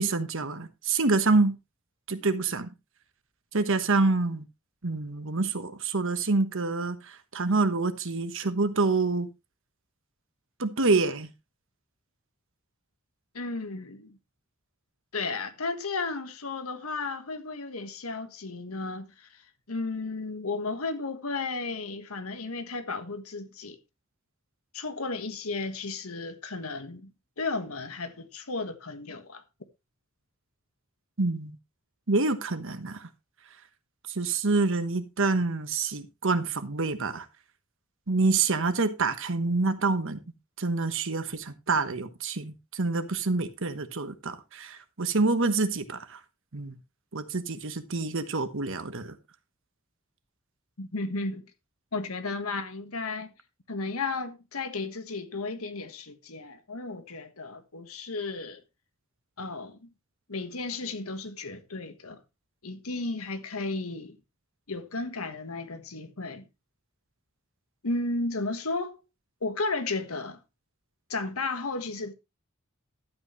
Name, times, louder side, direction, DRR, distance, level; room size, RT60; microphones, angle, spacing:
voice 1, 0.0-1.6 2.1-2.7 3.5-4.4 4.8-9.3 10.6-11.3 31.2-31.5 32.1-33.1 34.1-37.3 38.1-40.2 40.6-46.2 46.5-46.8 47.1-49.2, right 3 dB, 65° right, 1.2 m, -27 dB
voice 2, 13.3-14.2 15.1-19.3 19.7-23.8 24.7-27.1 27.4-29.4 50.8-51.4 51.9-53.3 53.7-58.6 59.4-59.9 60.3-62.2 62.6-64.2 64.7-66.4 67.8-69.0 69.4-70.4 71.1-72.1, left 3 dB, 85° left, 1.5 m, -34 dB
12.0 x 8.4 x 3.2 m
head